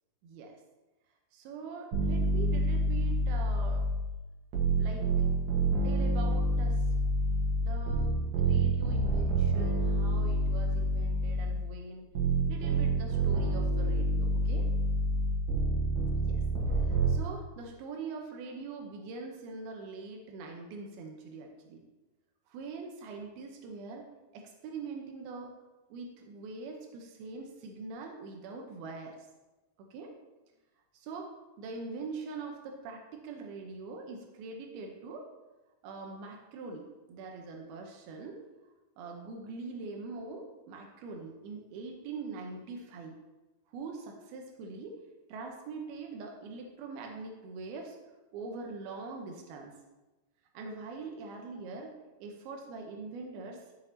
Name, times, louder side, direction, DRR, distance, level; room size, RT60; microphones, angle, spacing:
voice 1, 1.3-3.8 4.8-5.3 5.8-6.9 7.6-12.1 12.5-14.7 16.2-16.4 16.8-21.8 22.5-24.1 24.3-25.5 25.9-29.3 29.9-30.1 30.9-31.3 31.6-35.3 35.8-38.4 39.0-43.2 43.7-45.0 45.3-48.0 48.3-49.7 50.5-51.9 52.2-53.7, right 4 dB, 90° right, 2 dB, 2.8 m, -43 dB
sound 1, 1.9-4.1 4.5-11.7 12.2-17.2, right 1 dB, 60° right, 2.7 m, -28 dB
13.0 x 6.4 x 2.9 m, 1.1 s
omnidirectional pair, 4.3 m